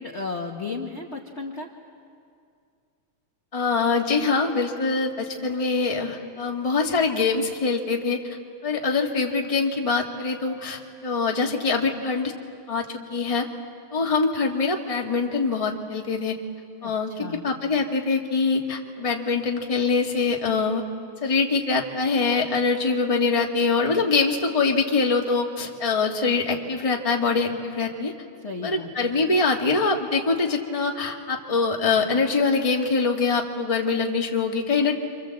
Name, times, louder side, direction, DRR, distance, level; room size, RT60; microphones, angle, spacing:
voice 1, 0.0-1.7 16.8-17.5 28.4-29.1, left 4 dB, 35° left, 0 dB, 1.2 m, -34 dB
voice 2, 3.5-8.2 8.6-12.3 12.7-13.4 13.9-16.4 16.8-20.8 21.2-28.1 28.6-35.0, left 4 dB, 15° left, 0 dB, 1.3 m, -24 dB
27.5 x 26.0 x 7.8 m, 2.4 s
omnidirectional pair, 3.3 m